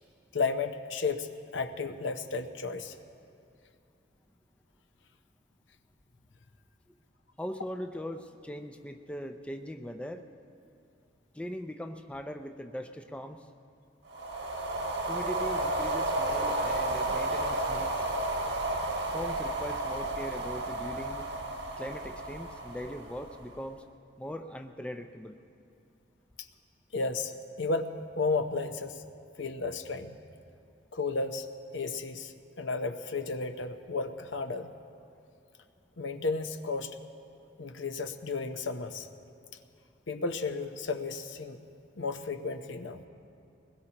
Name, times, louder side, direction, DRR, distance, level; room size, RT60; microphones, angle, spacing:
voice 1, 0.3-2.9 26.9-27.3 27.6-29.0 29.4-30.2 30.9-31.5 31.7-32.3 32.6-34.7 36.0-36.9 37.6-39.1 40.1-41.6 42.0-43.1, left 4 dB, 75° left, 8 dB, 0.7 m, -33 dB
voice 2, 7.4-10.3 11.3-13.5 15.1-18.1 19.1-21.3 21.8-23.8 24.2-25.4, equal, 5° left, 5 dB, 0.4 m, -40 dB
sound 1, 14.1-23.6, right 2 dB, 70° right, 1.4 m, -32 dB
22.5 x 20.5 x 2.9 m, 2.5 s
head